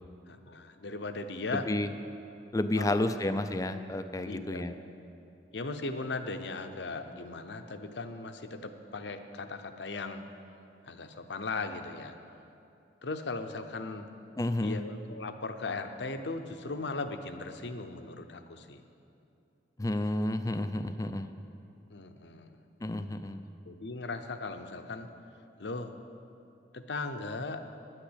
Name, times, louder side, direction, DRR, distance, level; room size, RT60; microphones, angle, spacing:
voice 1, 0.3-1.7 2.8-3.2 4.3-4.9 5.5-10.2 10.9-12.2 13.0-14.1 14.6-18.8 21.9-22.6 23.7-25.1 25.6-25.9 26.7-27.6, left 3 dB, 70° left, 8 dB, 0.8 m, -38 dB
voice 2, 1.5-1.9 2.5-4.7 14.4-14.8 19.8-21.3 22.8-23.5, left 1 dB, 20° left, 9 dB, 0.4 m, -31 dB
11.0 x 8.9 x 8.1 m, 2.7 s
head